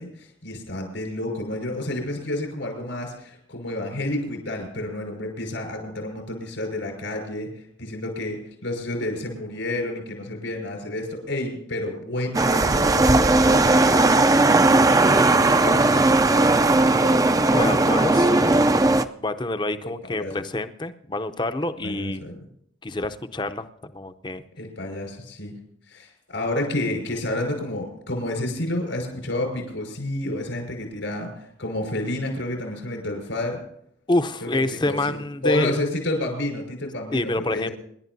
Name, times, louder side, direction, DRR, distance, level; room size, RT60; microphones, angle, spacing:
voice 1, 0.0-17.2 17.5-18.9 19.8-20.3 21.8-22.4 24.6-25.5 25.9-33.6 34.4-37.7, left 1 dB, 85° left, 1 dB, 5.5 m, -30 dB
sound 1, 12.3-19.0, right 2 dB, 20° right, 0.5 m, -17 dB
voice 2, 17.5-18.3 19.2-22.2 22.8-24.4 34.1-35.7 37.1-37.7, left 2 dB, 25° left, 10 dB, 0.7 m, -27 dB
27.0 x 11.5 x 2.7 m, 0.70 s
head